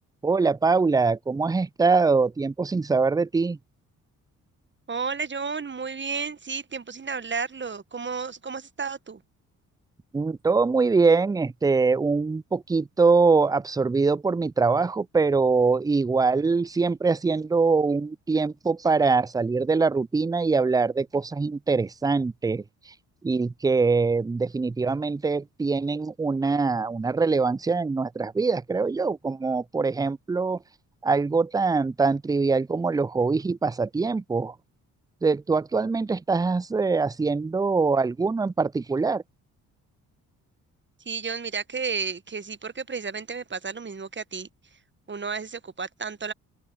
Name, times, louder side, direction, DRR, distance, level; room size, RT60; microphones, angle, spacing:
voice 1, 0.2-3.6 10.1-22.9 23.2-30.6 31.0-34.6 35.2-39.2, right 4 dB, 10° right, 0.4 m, -23 dB
voice 2, 4.9-9.2 41.0-44.5 45.1-46.3, right 5 dB, 25° right, 1.4 m, -32 dB
open air
figure-of-eight pair, 40°, 44 cm